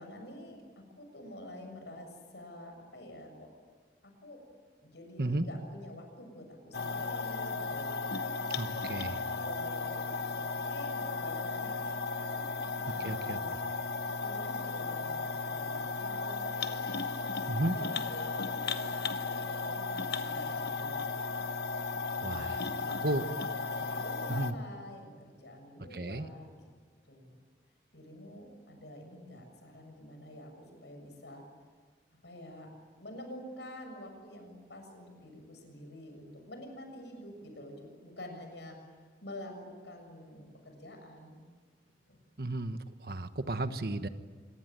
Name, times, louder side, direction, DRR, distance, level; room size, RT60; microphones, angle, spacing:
voice 1, 0.0-3.5 4.2-4.4 4.8-8.0 9.3-11.7 12.1-13.6 14.1-21.1 22.3-23.3 23.7-26.5 27.1-27.4 27.9-31.4 32.2-32.7 33.0-38.8 39.2-41.4 42.1-42.2, left 1 dB, 90° left, 4 dB, 7.2 m, -48 dB
sound 1, 6.7-24.5, left 4 dB, 70° left, 1.2 m, -35 dB
voice 2, 8.6-9.2 13.0-13.4 17.5-17.8 22.2-22.6 23.0-23.3 24.3-24.5 25.9-26.3 42.4-44.1, right 2 dB, 60° right, 10 dB, 1.3 m, -33 dB
27.0 x 23.5 x 9.3 m, 1.5 s
head